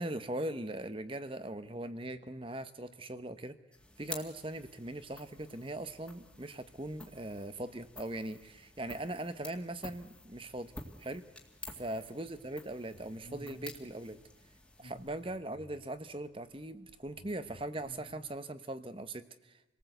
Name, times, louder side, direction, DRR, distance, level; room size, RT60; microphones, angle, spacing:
voice 1, 0.0-3.6 4.0-10.7 11.0-11.2 11.7-14.2 14.8-19.8, right 1 dB, 30° right, 11 dB, 1.1 m, -40 dB
sound 1, 3.7-15.4, left 2 dB, 5° left, 2.0 m, -51 dB
sound 2, 12.9-13.9 14.6-16.0 16.9-18.2, left 1 dB, 70° left, 3.8 m, -53 dB
28.0 x 19.0 x 8.0 m, 1.1 s
head